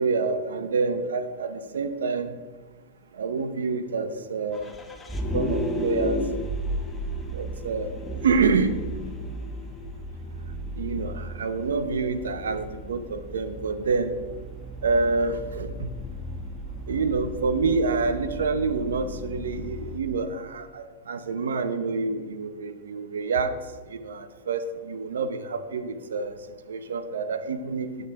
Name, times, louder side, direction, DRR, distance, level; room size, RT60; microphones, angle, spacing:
voice 1, 0.0-2.3 3.2-4.7 5.3-6.2 7.3-7.9 8.2-8.7 10.8-14.1 14.8-15.9 16.9-23.5 23.9-26.3 26.7-27.9, right 4 dB, 85° right, 10 dB, 0.8 m, -27 dB
Vehicle, 4.5-20.0, equal, 10° left, 0.9 m, -34 dB
9.2 x 7.4 x 3.6 m, 1.4 s
hypercardioid pair, 125°, 0 cm